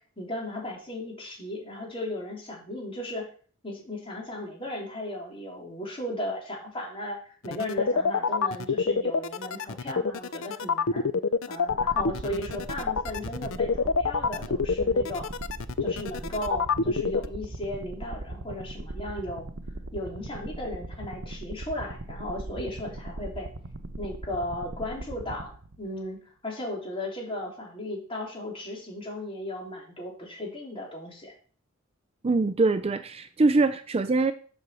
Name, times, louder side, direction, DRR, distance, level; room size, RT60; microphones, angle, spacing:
voice 1, 0.2-3.3 3.6-11.0 11.5-15.3 15.8-19.5 19.9-23.5 24.0-26.2 26.4-31.3, left 1 dB, 25° left, -2 dB, 3.5 m, -36 dB
sound 1, 7.4-17.2, left 4 dB, 70° left, 0.6 m, -26 dB
sound 2, 11.7-26.1, right 1 dB, 75° right, 1.0 m, -39 dB
voice 2, 32.2-34.3, right 3 dB, 30° right, 10 dB, 0.4 m, -23 dB
7.8 x 6.3 x 6.8 m, 0.43 s
head